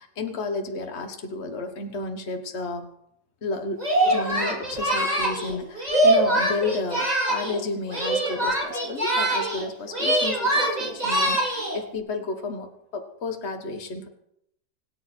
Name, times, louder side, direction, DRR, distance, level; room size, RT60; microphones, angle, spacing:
voice 1, 0.0-2.9 3.4-12.7 12.9-14.1, left 3 dB, 55° left, 5 dB, 1.6 m, -32 dB
Singing, 3.8-7.6 7.9-9.7 9.9-11.8, right 1 dB, 30° right, 3.7 m, -23 dB
25.5 x 9.9 x 4.4 m, 0.77 s
omnidirectional pair, 1.4 m